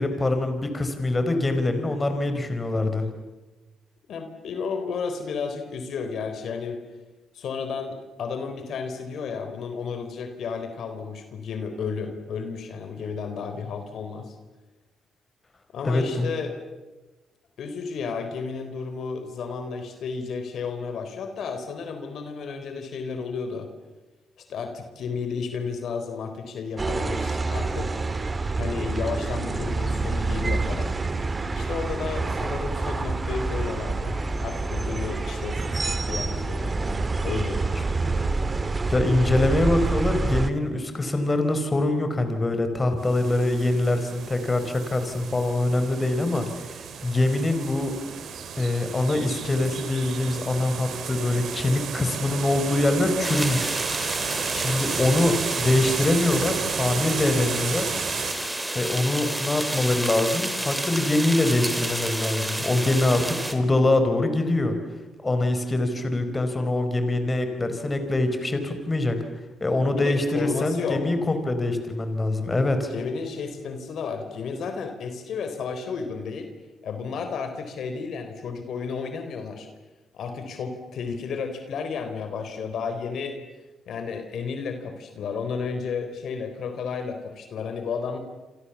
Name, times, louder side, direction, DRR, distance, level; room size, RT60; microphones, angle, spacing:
voice 1, 0.0-3.1 15.8-16.3 38.9-47.9 48.6-53.7 54.5-57.9 58.7-64.8 65.2-69.2 69.6-72.9, left 2 dB, 25° left, 7 dB, 4.8 m, -24 dB
voice 2, 4.1-6.8 7.3-14.4 15.7-16.5 17.6-23.7 24.4-28.0 28.6-31.0 31.5-36.7 37.2-37.9 69.8-71.0 72.9-76.5 76.8-79.7 80.1-83.4 83.9-88.2, left 5 dB, 65° left, 7 dB, 3.9 m, -32 dB
sound 1, 26.8-40.5, right 3 dB, 25° right, 2.0 m, -27 dB
sound 2, 43.0-58.3, right 7 dB, 65° right, 3.7 m, -33 dB
sound 3, 53.2-63.5, right 1 dB, 10° right, 3.7 m, -30 dB
28.0 x 27.0 x 7.3 m, 1.2 s
cardioid pair, 90°, 0 cm